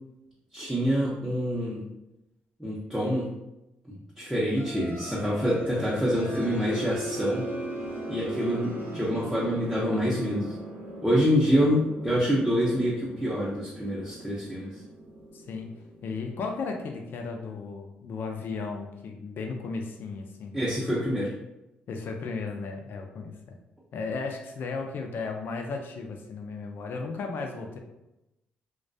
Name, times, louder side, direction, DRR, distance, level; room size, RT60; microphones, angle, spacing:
voice 1, 0.5-1.8 2.6-3.3 3.9-7.5 8.1-10.5 11.0-14.7 20.5-21.3, equal, 5° right, -8 dB, 0.6 m, -26 dB
sound 1, 4.6-17.1, right 1 dB, 60° right, 0.6 m, -39 dB
voice 2, 15.3-15.7 16.0-20.6 21.9-23.3 23.9-27.8, left 4 dB, 65° left, 3 dB, 0.4 m, -35 dB
2.2 x 2.1 x 2.6 m, 0.93 s
supercardioid pair, 70°, 4 cm